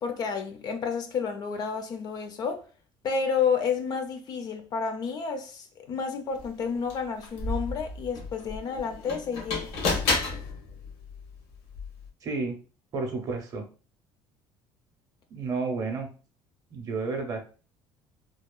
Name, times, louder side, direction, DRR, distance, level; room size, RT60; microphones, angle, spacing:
voice 1, 0.0-2.6 3.0-9.7, left 6 dB, 40° left, 0.4 m, -30 dB
sound 1, 6.4-6.5 6.9-12.1, left 3 dB, 90° left, 0.9 m, -32 dB
voice 2, 12.2-12.6 12.9-13.6 15.3-16.1 16.7-17.4, right 4 dB, 35° right, 0.5 m, -31 dB
2.7 x 2.1 x 2.2 m
cardioid pair, 150°, 10 cm